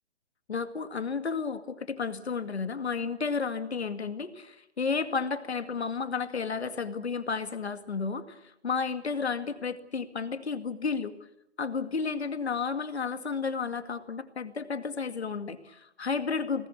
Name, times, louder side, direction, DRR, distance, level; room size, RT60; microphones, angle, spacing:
voice 1, 0.5-11.1 11.6-16.7, left 5 dB, 75° left, 9 dB, 2.3 m, -32 dB
23.5 x 19.0 x 8.5 m, 0.83 s
figure-of-eight pair, 140°, 33 cm